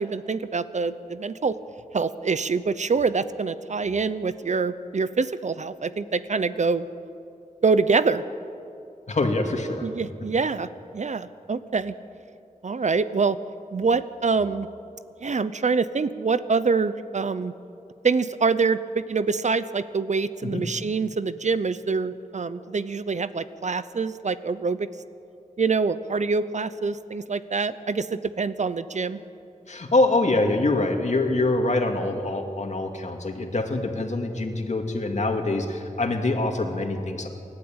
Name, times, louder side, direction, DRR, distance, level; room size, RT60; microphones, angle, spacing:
voice 1, 0.0-1.6 1.9-6.9 7.6-8.2 9.8-10.7 10.9-11.9 12.6-13.4 13.7-14.7 15.2-17.5 18.0-24.9 25.6-29.2, right 4 dB, 55° right, 14 dB, 0.7 m, -25 dB
voice 2, 9.1-9.9 20.4-20.6 29.7-37.3, left 2 dB, 55° left, 4 dB, 2.3 m, -24 dB
28.5 x 12.0 x 8.9 m, 2.7 s
wide cardioid pair, 75°, 14 cm